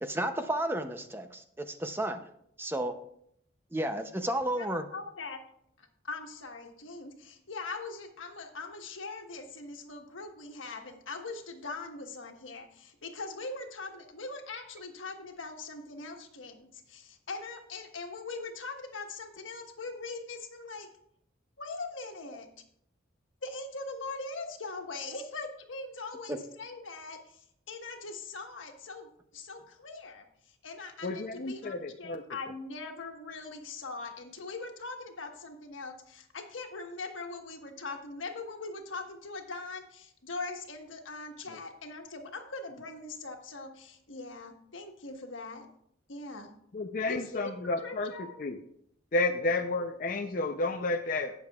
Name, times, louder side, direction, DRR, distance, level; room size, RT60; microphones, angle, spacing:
voice 1, 0.0-2.2 2.6-2.9 3.7-4.9 26.3-26.4, right 1 dB, 10° right, 8 dB, 0.5 m, -32 dB
voice 2, 4.9-5.4 5.8-20.9 21.6-22.5 23.4-45.7 46.1-46.5 47.1-48.4 49.3-49.6, left 3 dB, 85° left, 4 dB, 1.3 m, -41 dB
voice 3, 31.0-32.2 46.7-48.6 49.1-51.3, left 2 dB, 45° left, 4 dB, 0.5 m, -31 dB
18.0 x 6.6 x 2.3 m, 0.70 s
head